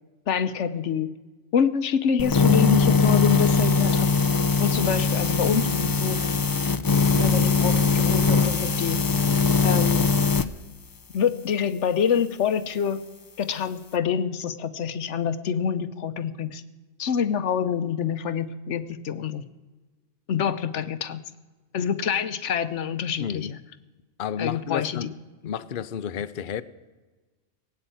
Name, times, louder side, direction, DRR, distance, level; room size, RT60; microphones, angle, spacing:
voice 1, 0.3-1.1 1.5-4.1 4.6-6.2 7.2-9.0 9.6-10.1 11.1-13.0 13.4-16.6 17.0-19.4 20.3-21.2 21.7-23.6 24.4-25.1, left 7 dB, 90° left, 1.2 m, -26 dB
sound 1, 2.2-10.5, left 4 dB, 35° left, 0.3 m, -21 dB
voice 2, 23.2-23.5 24.2-25.1 25.4-26.6, left 8 dB, 55° left, 0.8 m, -31 dB
17.5 x 8.7 x 9.1 m
omnidirectional pair, 1.2 m